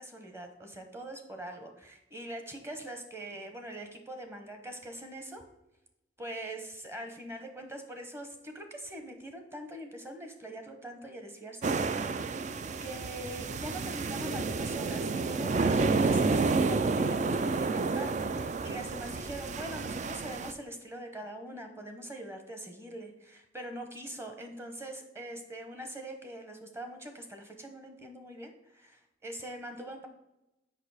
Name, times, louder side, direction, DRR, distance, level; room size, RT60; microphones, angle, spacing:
voice 1, 0.0-5.4 6.2-12.4 12.8-30.1, right 1 dB, 15° right, 5 dB, 0.9 m, -43 dB
sound 1, 11.6-20.5, right 3 dB, 40° right, 0.4 m, -30 dB
6.7 x 5.6 x 4.8 m, 0.94 s
head